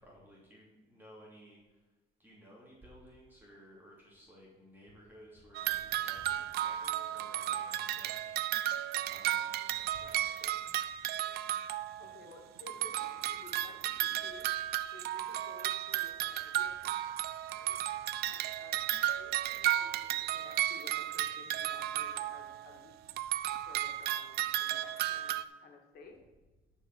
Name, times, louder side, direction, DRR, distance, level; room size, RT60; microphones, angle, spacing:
voice 1, 0.0-1.6 2.2-8.4 9.0-10.8, equal, 10° right, -5 dB, 2.8 m, -56 dB
sound 1, 5.5-12.3 12.6-22.8 23.1-25.4, right 13 dB, 70° right, 0.5 m, -34 dB
voice 2, 12.0-14.5 14.9-17.0 17.5-17.8 18.2-23.0 23.7-26.2, left 4 dB, 65° left, 3 dB, 2.2 m, -55 dB
11.5 x 4.9 x 6.1 m, 1.2 s
cardioid pair, 110°, 17 cm